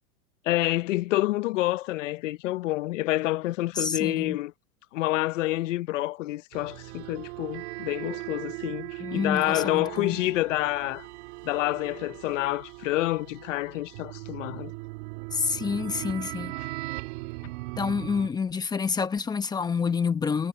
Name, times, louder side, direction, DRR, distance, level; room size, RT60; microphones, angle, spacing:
voice 1, 0.4-4.5 4.9-11.1 11.4-14.7 16.6-16.7, left 17 dB, 50° left, 0.8 m, -28 dB
voice 2, 3.8-4.4 9.0-10.2 15.3-16.5 17.8-20.5, left 5 dB, 10° left, 0.8 m, -28 dB
sound 1, 6.5-18.3, right 25 dB, 45° right, 3.5 m, -39 dB
hypercardioid pair, 150°, 47 cm